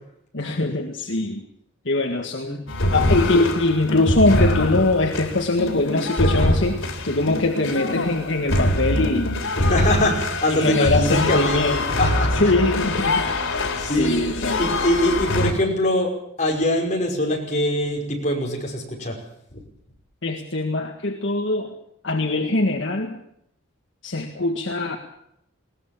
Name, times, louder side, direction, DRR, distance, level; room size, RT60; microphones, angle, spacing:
voice 1, 0.3-1.5 1.9-2.7 2.9-9.4 10.5-12.0 12.3-13.3 13.6-14.6 20.2-21.7 22.0-23.2 24.0-25.0, left 2 dB, 65° left, 3 dB, 1.8 m, -22 dB
sound 1, 2.7-15.5, left 1 dB, 80° left, 3.8 m, -24 dB
voice 2, 9.6-11.6 12.0-12.3 13.5-14.2 14.6-16.1 16.4-19.2, left 1 dB, 35° left, 0 dB, 5.5 m, -23 dB
21.0 x 18.5 x 7.4 m, 0.76 s
head